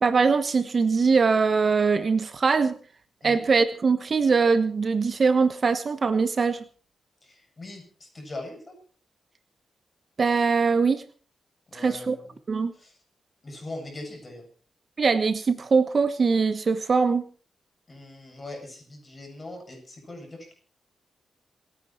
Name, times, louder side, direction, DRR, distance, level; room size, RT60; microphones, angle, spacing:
voice 1, 0.0-2.8 3.2-6.6 10.2-11.0 11.7-12.2 12.5-12.7 15.0-17.3, right 5 dB, 45° right, 11 dB, 1.1 m, -22 dB
voice 2, 7.2-8.7 11.7-12.4 12.7-13.0 13.4-14.4 17.9-20.5, left 2 dB, 30° left, 4 dB, 7.6 m, -41 dB
28.0 x 9.6 x 4.5 m, 0.39 s
cardioid pair, 110°, 0 cm